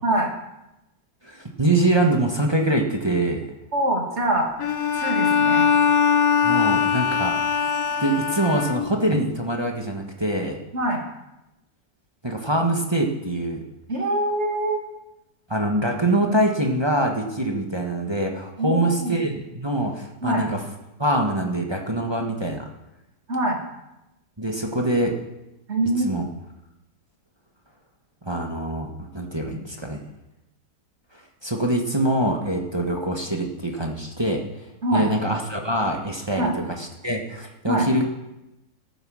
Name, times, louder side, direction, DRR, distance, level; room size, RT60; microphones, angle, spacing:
voice 1, 1.2-3.4 6.4-7.5 8.0-10.6 12.2-13.6 15.5-20.6 21.0-22.7 24.4-25.2 26.0-26.2 28.2-30.0 31.4-34.6 34.9-38.0, right 1 dB, 15° right, 1 dB, 1.2 m, -24 dB
voice 2, 3.7-4.5 5.0-5.7 10.7-11.0 13.9-14.8 18.6-19.2 20.2-20.5 22.2-22.3 23.3-23.6 25.7-26.2 34.8-35.1 36.4-36.5 37.7-37.9, right 1 dB, 40° right, 1 dB, 2.4 m, -24 dB
Bowed string instrument, 4.6-9.2, left 7 dB, 65° left, 1.1 m, -21 dB
14.0 x 9.0 x 6.3 m, 0.93 s
omnidirectional pair, 1.9 m